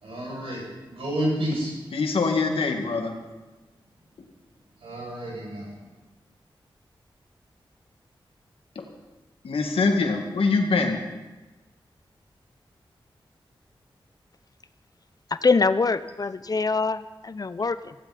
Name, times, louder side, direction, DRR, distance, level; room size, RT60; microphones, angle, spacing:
voice 1, 0.0-1.8 4.8-5.7, right 1 dB, 90° right, -3 dB, 6.8 m, -30 dB
voice 2, 1.9-3.1 8.8-8.9 9.4-11.0, left 4 dB, 85° left, 3 dB, 2.0 m, -24 dB
voice 3, 15.4-17.9, left 4 dB, 45° left, 13 dB, 0.7 m, -24 dB
16.0 x 15.5 x 4.2 m, 1.1 s
cardioid pair, 65°, 9 cm